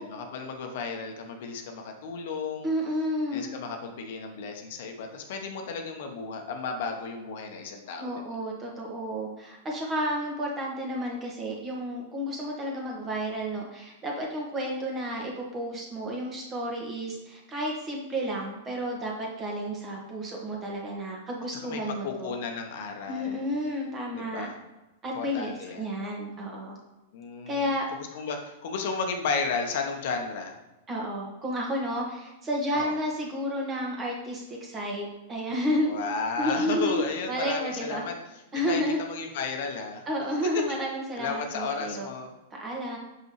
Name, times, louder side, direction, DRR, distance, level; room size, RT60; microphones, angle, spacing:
voice 1, 0.0-2.7 3.3-8.1 21.5-23.4 24.1-24.5 25.1-25.8 27.1-30.5 32.7-32.9 35.8-38.1 38.7-40.0 40.4-40.6 41.2-42.3, left 5 dB, 60° left, 4 dB, 0.9 m, -33 dB
voice 2, 2.6-3.4 8.0-22.3 23.1-24.5 25.0-26.8 27.5-27.9 30.9-36.0 36.4-38.0 38.5-39.0 40.0-42.1 42.5-43.0, equal, 25° right, -2 dB, 1.7 m, -31 dB
6.0 x 5.4 x 3.2 m, 1.0 s
hypercardioid pair, 105°, 0 cm